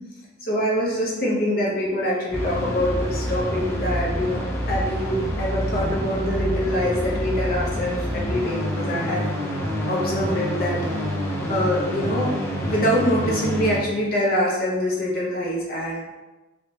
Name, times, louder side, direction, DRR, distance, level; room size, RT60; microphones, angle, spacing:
voice 1, 0.4-4.4 4.7-9.3 9.9-10.8 11.5-12.3 12.7-16.0, equal, 45° left, -4 dB, 0.8 m, -24 dB
sound 1, 2.3-13.8, equal, 10° left, 0.5 m, -27 dB
3.2 x 3.1 x 2.9 m, 1.1 s
head